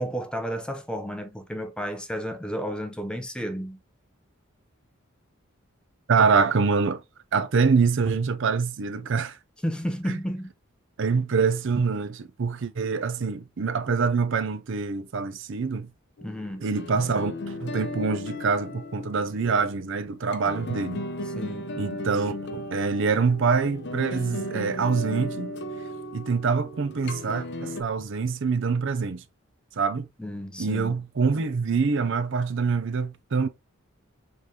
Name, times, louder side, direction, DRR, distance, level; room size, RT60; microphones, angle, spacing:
voice 1, 0.0-3.8 9.6-10.5 16.2-16.6 21.3-21.7 30.2-31.0, equal, 5° left, 0.6 m, -32 dB
voice 2, 6.1-7.0 7.3-9.4 10.1-10.2 11.0-15.9 16.6-21.1 21.8-25.5 26.1-29.2 29.7-30.1 30.6-33.5, right 5 dB, 55° right, 0.5 m, -25 dB
sound 1, 16.2-27.8, left 1 dB, 55° left, 0.6 m, -36 dB
5.0 x 3.8 x 2.8 m
head